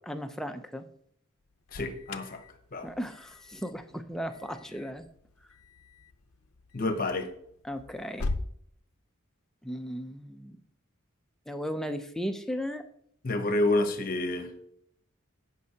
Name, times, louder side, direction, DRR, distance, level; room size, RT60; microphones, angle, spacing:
voice 1, 0.0-0.8 2.8-5.0 7.6-8.3 9.6-10.6 11.5-12.8, equal, ahead, 6 dB, 0.5 m, -36 dB
Alarm, 1.4-8.5, left 2 dB, 85° left, 0.6 m, -41 dB
voice 2, 1.7-2.4 2.7-2.9 6.7-7.3 13.2-14.5, left 2 dB, 40° left, 7 dB, 0.8 m, -28 dB
16.0 x 5.3 x 2.8 m, 0.70 s
head